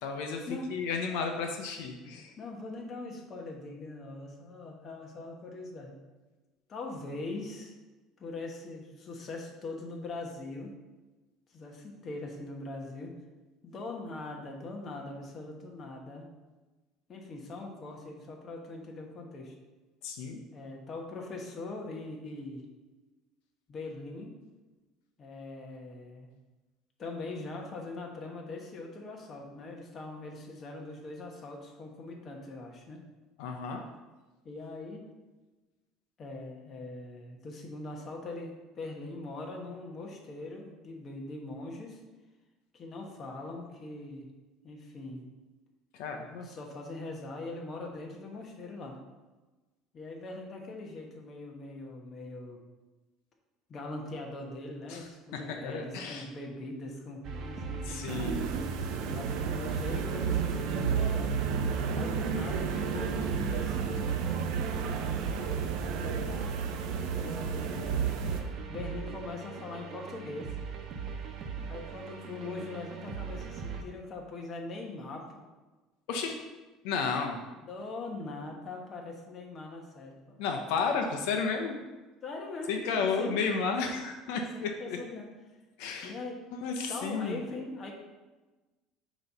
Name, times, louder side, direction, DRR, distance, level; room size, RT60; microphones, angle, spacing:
voice 1, 0.0-2.3 20.0-20.4 33.4-33.8 45.9-46.5 54.9-55.0 55.3-56.2 57.9-58.4 76.1-76.4 76.8-77.4 80.4-81.8 82.7-85.0 85.8-86.1 86.6-87.4, left 5 dB, 80° left, 3 dB, 0.8 m, -32 dB
voice 2, 2.4-6.0 6.7-7.7 8.2-10.7 11.5-13.2 13.6-16.3 17.1-19.5 20.5-22.6 23.7-24.3 25.2-26.3 27.0-33.1 34.4-35.0 36.2-42.0 42.7-44.3 44.6-45.3 46.4-49.0 49.9-52.6 53.7-58.1 59.1-61.4 61.9-64.1 65.8-66.5 67.1-68.2 68.7-70.5 71.7-75.4 77.5-80.4 82.2-83.4 83.8-84.0 84.5-85.3 86.0-86.4 86.9-87.9, left 2 dB, 35° left, 1 dB, 1.2 m, -41 dB
sound 1, 57.2-73.8, right 4 dB, 45° right, 0.9 m, -40 dB
sound 2, 58.1-68.4, right 6 dB, 70° right, 0.7 m, -32 dB
7.7 x 3.1 x 5.5 m, 1.2 s
cardioid pair, 140°, 0 cm